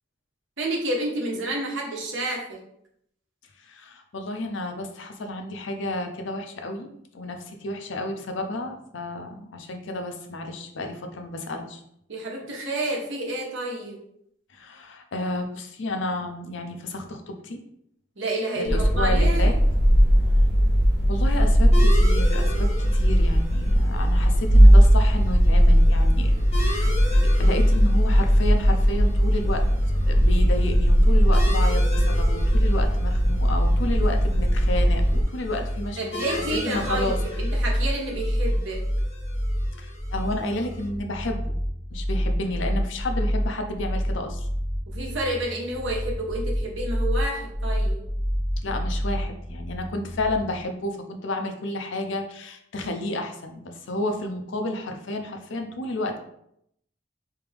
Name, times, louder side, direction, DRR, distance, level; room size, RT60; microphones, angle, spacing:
voice 1, 0.6-2.6 12.1-14.0 18.2-19.5 36.0-38.8 44.9-48.0, right 1 dB, 80° right, -1 dB, 1.1 m, -30 dB
voice 2, 3.6-11.8 14.5-17.6 18.6-19.5 21.1-26.3 26.6-26.9 27.2-29.6 30.1-36.0 36.3-37.2 39.8-41.6 41.9-44.5 48.6-56.2, left 1 dB, 75° left, 5 dB, 0.6 m, -31 dB
sound 1, 18.7-35.2, equal, 55° right, 0.7 m, -18 dB
sound 2, 21.7-40.9, left 1 dB, 30° left, 1.1 m, -39 dB
sound 3, 35.4-50.4, equal, ahead, 0.6 m, -28 dB
3.4 x 3.4 x 3.3 m, 0.73 s
head